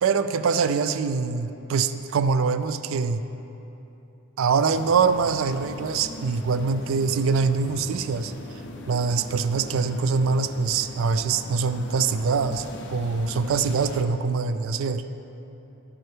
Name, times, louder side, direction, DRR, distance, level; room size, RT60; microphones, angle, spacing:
voice 1, 0.0-3.2 4.4-8.3 8.9-15.0, right 5 dB, 70° right, 11 dB, 0.3 m, -24 dB
sound 1, 4.7-14.0, left 1 dB, 55° left, 0.7 m, -40 dB
11.5 x 8.7 x 3.3 m, 3.0 s
head